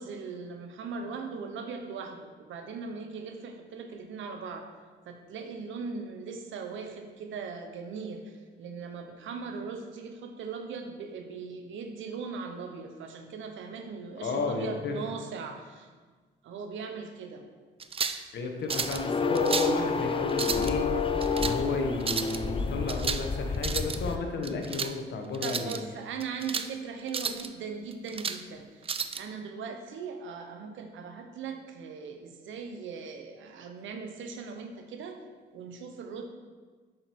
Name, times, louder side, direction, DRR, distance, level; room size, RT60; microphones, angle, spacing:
voice 1, 0.0-4.7 5.0-15.9 16.4-17.5 25.4-35.2 35.5-36.2, right 5 dB, 75° right, 5 dB, 1.0 m, -39 dB
voice 2, 14.2-14.9 18.3-20.9 21.3-25.8, left 3 dB, 60° left, 3 dB, 1.3 m, -32 dB
sound 1, 17.8-18.2 18.7-19.0 19.3-19.8 20.3-20.7 21.2-21.6 22.0-22.4 22.9-23.3 23.5-24.0 24.4-24.9 25.3-25.8 26.2-26.7 27.1-27.5 27.9-28.4 28.9-29.2, right 5 dB, 30° right, 0.5 m, -32 dB
sound 2, 18.7-24.2, left 5 dB, 25° left, 0.6 m, -30 dB
7.5 x 6.5 x 4.6 m, 1.4 s
cardioid pair, 90°, 20 cm